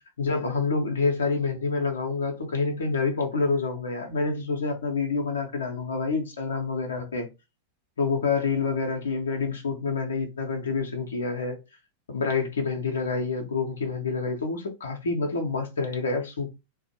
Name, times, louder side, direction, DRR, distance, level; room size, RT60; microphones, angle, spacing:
voice 1, 0.2-7.3 8.0-11.6 12.1-16.5, left 4 dB, 70° left, 0.6 m, -27 dB
2.4 x 2.1 x 2.7 m
figure-of-eight pair, 90°, 0 cm